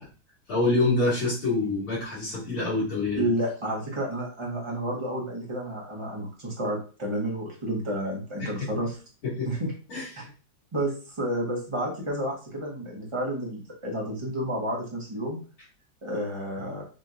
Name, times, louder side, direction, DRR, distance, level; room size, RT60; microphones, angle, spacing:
voice 1, 0.5-3.2 8.4-8.5 9.2-9.5 9.9-10.3, left 2 dB, 75° left, -12 dB, 3.1 m, -26 dB
voice 2, 3.2-8.9 9.4-9.7 10.2-10.3 10.7-15.4 16.0-16.8, right 1 dB, 15° right, -3 dB, 1.1 m, -30 dB
5.9 x 3.2 x 2.5 m, 0.36 s
omnidirectional pair, 2.4 m